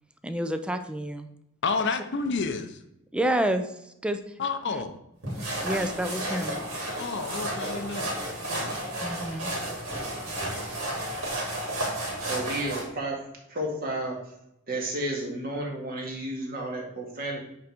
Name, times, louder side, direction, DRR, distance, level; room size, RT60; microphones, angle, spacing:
voice 1, 0.2-1.3 3.1-4.2 4.7-4.8 5.6-6.6 9.0-9.5 10.5-10.8, right 1 dB, 5° right, 8 dB, 0.5 m, -29 dB
voice 2, 1.6-2.8 4.4-5.0 7.0-8.2 8.4-8.8, left 4 dB, 55° left, 7 dB, 0.6 m, -30 dB
sound 1, 5.2-12.9, right 1 dB, 75° right, 3.0 m, -32 dB
voice 3, 12.2-13.2 13.5-14.2 14.7-17.4, right 1 dB, 45° right, -1 dB, 2.0 m, -32 dB
8.8 x 3.8 x 4.5 m, 0.83 s
head